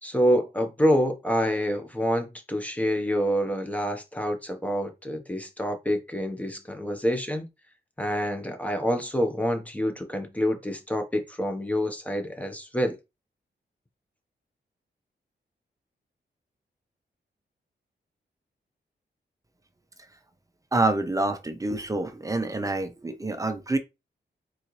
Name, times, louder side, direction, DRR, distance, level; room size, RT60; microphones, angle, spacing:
voice 1, 0.0-7.5 8.0-13.0, equal, 10° left, 0.9 m, -27 dB
voice 2, 20.7-23.8, right 2 dB, 20° right, 0.6 m, -27 dB
4.2 x 3.9 x 3.1 m
wide cardioid pair, 125°, 19 cm